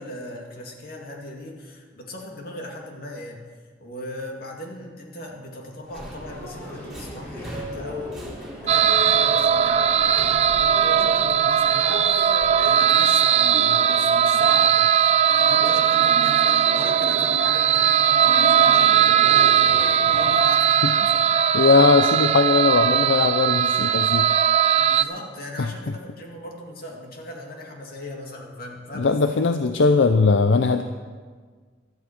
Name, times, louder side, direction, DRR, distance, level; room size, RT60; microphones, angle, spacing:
voice 1, 0.0-3.4 3.8-21.3 24.7-29.4, left 1 dB, 55° left, 0 dB, 2.3 m, -38 dB
Subway metro underground, 5.9-12.5, equal, ahead, 3.8 m, -40 dB
Subway metro underground 2, 6.3-22.2, equal, 15° left, 5.0 m, -39 dB
sound 1, 8.7-25.0, right 8 dB, 35° right, 0.4 m, -19 dB
voice 2, 21.5-24.3 25.6-25.9 28.9-30.8, left 4 dB, 75° left, 8 dB, 0.6 m, -19 dB
15.5 x 12.0 x 4.5 m, 1.6 s
head